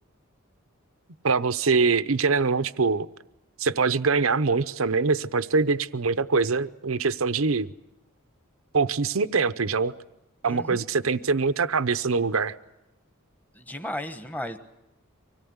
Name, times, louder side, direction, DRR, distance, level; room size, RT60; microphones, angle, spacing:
voice 1, 1.2-3.1 3.6-7.7 8.7-9.9 10.4-12.5, right 4 dB, 80° right, 13 dB, 0.8 m, -23 dB
voice 2, 10.4-10.8 13.5-14.6, left 1 dB, 10° left, 8 dB, 1.2 m, -35 dB
25.0 x 18.0 x 9.5 m, 0.92 s
head